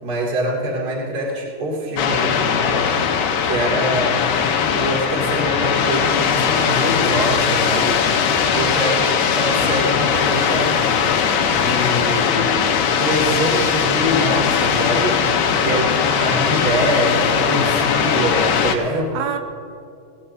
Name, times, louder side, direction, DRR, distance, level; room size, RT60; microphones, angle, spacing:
voice 1, 0.0-2.9 3.4-4.2 4.7-8.0 8.5-11.1 11.5-12.7 13.0-15.2 15.6-19.2, right 1 dB, 30° right, -4 dB, 2.5 m, -24 dB
sound 1, 2.0-18.8, left 7 dB, 75° left, 2.2 m, -19 dB
voice 2, 8.4-9.5 14.6-14.9 18.8-19.4, right 8 dB, 90° right, 5 dB, 2.8 m, -32 dB
18.5 x 17.0 x 2.7 m, 2.5 s
omnidirectional pair, 4.3 m